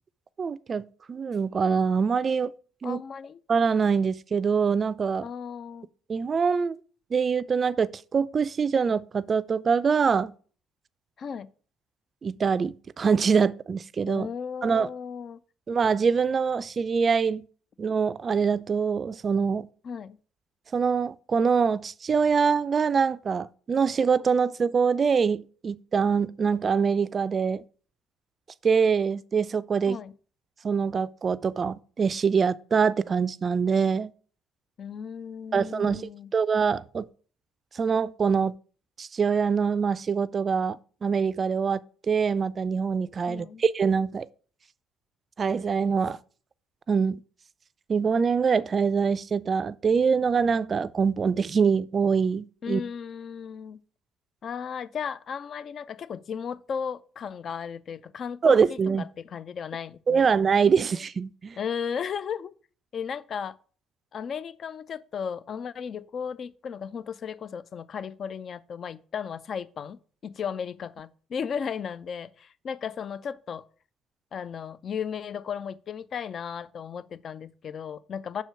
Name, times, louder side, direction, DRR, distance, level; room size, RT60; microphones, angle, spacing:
voice 1, 0.4-2.5 2.8-3.0 3.5-5.3 6.1-6.8 7.1-10.3 12.2-14.3 14.6-14.9 15.7-17.4 17.8-19.7 20.7-27.6 28.6-30.0 30.6-34.1 35.5-37.1 37.7-38.5 39.0-41.8 42.1-44.3 45.4-46.2 46.9-47.2 47.9-52.8 58.4-59.0 60.1-61.6, right 6 dB, 40° right, 0.3 m, -24 dB
voice 2, 2.8-3.4 5.2-5.9 11.2-11.5 14.1-15.4 19.8-20.2 29.9-30.1 34.8-36.3 43.3-43.6 52.6-53.8 54.4-60.3 61.6-62.5 62.9-63.6 64.1-73.6 74.3-78.4, left 7 dB, 55° left, 0.4 m, -35 dB
5.8 x 4.4 x 5.6 m
hypercardioid pair, 60°, 0 cm